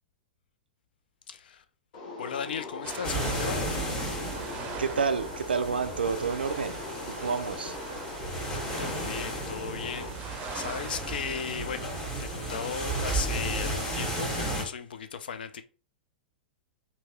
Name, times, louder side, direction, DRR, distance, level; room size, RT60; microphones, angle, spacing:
voice 1, 1.3-1.6 2.2-3.7 8.8-15.6, left 7 dB, 70° left, 0.4 m, -36 dB
sound 1, 1.9-10.1, left 3 dB, 50° left, 0.9 m, -41 dB
sound 2, 2.8-14.5, right 5 dB, 30° right, 0.6 m, -44 dB
sound 3, 3.0-14.6, right 1 dB, 15° left, 1.2 m, -34 dB
voice 2, 4.8-6.8 7.1-7.7, right 5 dB, 80° right, 0.3 m, -29 dB
2.8 x 2.7 x 2.4 m
figure-of-eight pair, 100°, 5 cm